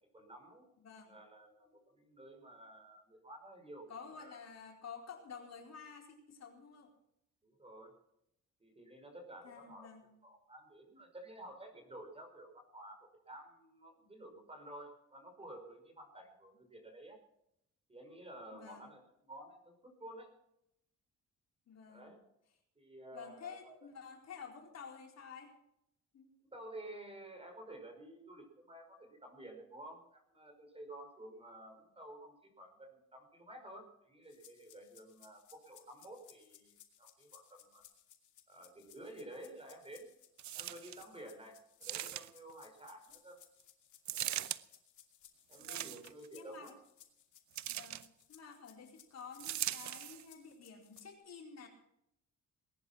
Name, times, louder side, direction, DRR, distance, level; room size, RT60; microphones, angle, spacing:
voice 1, 0.1-0.7 1.1-4.4 7.4-7.9 8.6-9.9 10.2-17.2 17.9-20.4 21.9-22.2 22.8-23.8 26.4-37.8 38.5-40.1 40.5-43.4 44.1-44.5 45.5-46.8, right 1 dB, 20° right, 5 dB, 5.5 m, -52 dB
voice 2, 0.8-1.1 3.9-6.9 9.4-10.1 18.5-18.9 21.7-22.1 23.1-25.5 26.1-26.3 45.6-46.0 46.3-46.7 47.7-51.7, left 6 dB, 60° left, 1 dB, 4.4 m, -51 dB
sound 1, 34.3-51.1, left 10 dB, 75° left, 2.6 m, -63 dB
sound 2, 40.4-41.0 41.8-42.5 44.0-44.6 45.5-46.3 47.5-48.1 49.4-50.2 51.0-51.1, right 13 dB, 70° right, 0.8 m, -40 dB
19.5 x 11.0 x 5.8 m, 0.77 s
cardioid pair, 90°, 30 cm